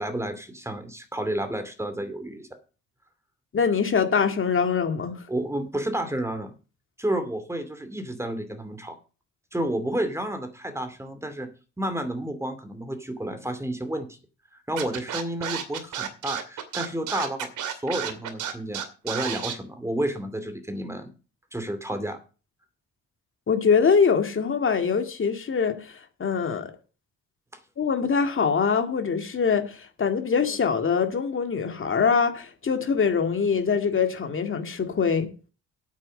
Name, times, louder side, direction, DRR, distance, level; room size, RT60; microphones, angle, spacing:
voice 1, 0.0-2.5 5.3-6.5 7.0-9.0 9.5-11.5 11.8-14.1 14.5-21.1 21.5-22.2, right 1 dB, 10° right, 2.5 m, -31 dB
voice 2, 3.5-5.2 23.5-26.7 27.8-35.3, left 6 dB, 45° left, 2.1 m, -23 dB
Scratching (performance technique), 14.8-19.5, right 9 dB, 80° right, 2.5 m, -31 dB
9.0 x 8.3 x 6.6 m
cardioid pair, 90°, 30 cm